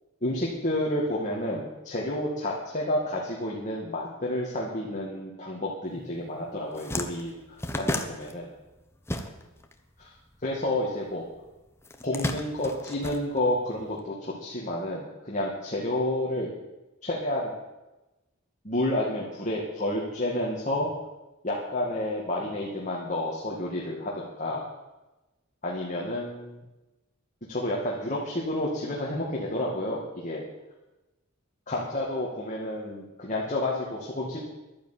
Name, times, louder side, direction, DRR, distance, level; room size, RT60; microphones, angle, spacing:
voice 1, 0.2-8.5 10.4-11.2 12.0-16.5 17.0-17.5 18.6-20.9 21.4-24.6 25.6-26.6 27.5-30.5 31.7-34.4, left 1 dB, 35° left, -3 dB, 2.2 m, -30 dB
sound 1, 6.2-6.3 6.6-9.7 10.0-11.2 11.8-13.8, left 1 dB, 10° left, 1.0 m, -33 dB
11.5 x 10.0 x 8.6 m, 1.0 s
head